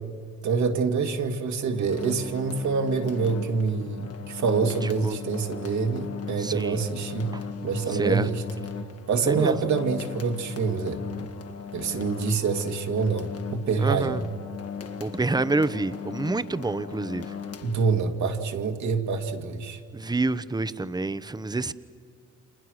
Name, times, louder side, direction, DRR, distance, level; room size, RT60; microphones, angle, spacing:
voice 1, 0.4-7.4 7.6-8.4 9.1-11.0 11.7-14.2 17.6-19.8, right 5 dB, 65° right, 5 dB, 2.4 m, -26 dB
sound 1, 1.8-18.2, left 7 dB, 50° left, 2.0 m, -38 dB
voice 2, 6.4-6.8 7.3-7.4 7.9-8.3 9.3-9.6 13.8-14.2 15.0-17.3 19.9-21.7, right 3 dB, 15° right, 14 dB, 0.9 m, -27 dB
30.0 x 26.5 x 6.5 m, 2.2 s
cardioid pair, 90°, 30 cm